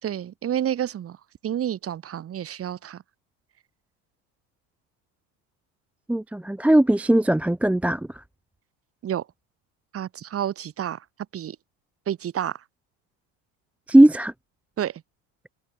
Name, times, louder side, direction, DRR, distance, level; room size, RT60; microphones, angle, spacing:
voice 1, 0.0-1.2 1.4-3.0 9.0-9.3 9.9-11.1 11.3-11.6 12.1-12.6 14.8-15.0, right 10 dB, 35° right, 4.2 m, -29 dB
voice 2, 6.1-8.2 13.9-14.3, right 1 dB, 5° right, 0.8 m, -18 dB
cardioid pair, 140°, 41 cm